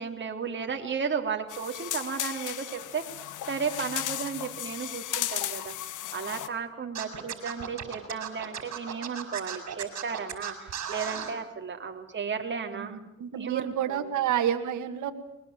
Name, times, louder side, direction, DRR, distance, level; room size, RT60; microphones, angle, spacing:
voice 1, 0.0-3.0 3.5-5.7 6.1-13.0 13.3-14.0, right 6 dB, 40° right, 4 dB, 3.4 m, -34 dB
sound 1, 1.5-6.5, left 12 dB, 85° left, 1.7 m, -35 dB
Scratching (performance technique), 6.9-11.3, right 8 dB, 60° right, 5.4 m, -35 dB
voice 2, 12.7-15.1, right 10 dB, 75° right, 5 dB, 2.1 m, -29 dB
22.0 x 21.0 x 8.9 m, 0.84 s
cardioid pair, 90°, 30 cm